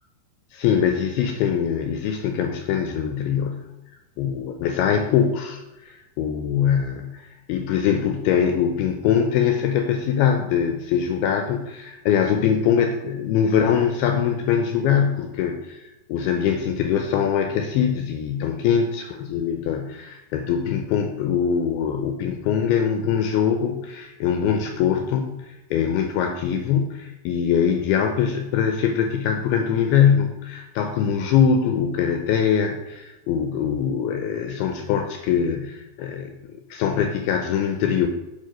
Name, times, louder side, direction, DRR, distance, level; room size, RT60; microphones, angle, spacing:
voice 1, 0.5-3.7 4.2-38.1, left 8 dB, 80° left, 5 dB, 2.4 m, -23 dB
9.5 x 4.2 x 5.1 m, 0.99 s
omnidirectional pair, 4.9 m